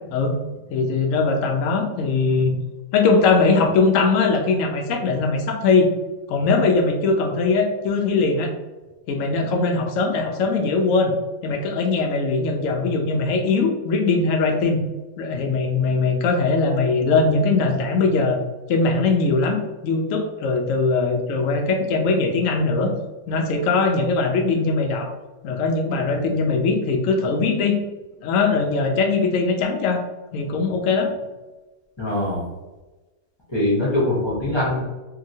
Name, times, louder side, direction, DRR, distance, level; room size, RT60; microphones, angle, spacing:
voice 1, 0.7-2.5 2.9-5.9 6.3-8.5 9.1-11.1 11.4-14.8 15.2-18.4 18.7-22.9 23.3-25.1 25.4-27.8 28.2-30.0 30.3-31.1, left 4 dB, 90° left, 3 dB, 0.7 m, -20 dB
voice 2, 32.0-32.4 33.5-34.8, left 1 dB, 35° left, -7 dB, 0.4 m, -22 dB
2.8 x 2.8 x 2.6 m, 1.1 s
omnidirectional pair, 2.0 m